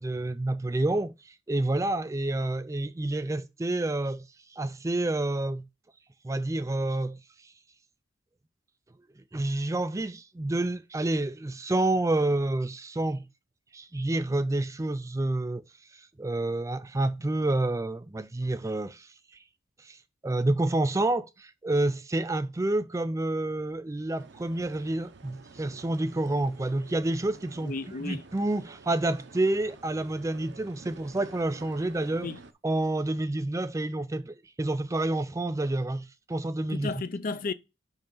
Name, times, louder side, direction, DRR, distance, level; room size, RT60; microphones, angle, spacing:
voice 1, 0.0-4.3 4.5-5.6 6.2-7.5 9.3-13.3 13.7-15.6 15.9-19.1 19.8-20.0 20.2-27.7 28.0-32.3 32.6-36.9, right 2 dB, 15° right, 0.4 m, -29 dB
sound 1, 24.2-32.5, right 3 dB, 60° right, 0.8 m, -51 dB
voice 2, 27.6-28.2 32.2-32.4 36.7-37.5, left 3 dB, 45° left, 0.5 m, -33 dB
5.7 x 5.3 x 5.3 m
head